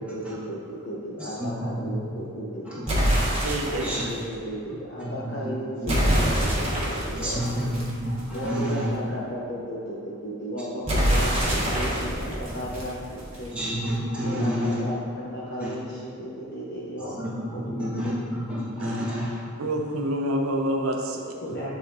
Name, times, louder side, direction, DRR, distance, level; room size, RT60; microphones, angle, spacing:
voice 1, 0.0-3.1 3.7-7.7 8.3-13.6 14.2-18.2 21.4-21.8, equal, 55° left, -7 dB, 0.8 m, -35 dB
voice 2, 1.2-2.2 2.6-3.3 3.8-4.0 5.0-5.4 5.8-6.1 7.1-9.1 13.5-14.8 15.6-15.7 17.0-19.4, equal, 5° right, -9 dB, 1.4 m, -30 dB
sound 1, 2.9-4.1 5.9-8.6 10.9-13.6, equal, 30° right, 1.4 m, -25 dB
voice 3, 3.4-3.9 18.8-18.9 19.6-21.4, right 1 dB, 85° right, 2 dB, 0.7 m, -27 dB
9.7 x 4.0 x 2.6 m, 2.5 s
head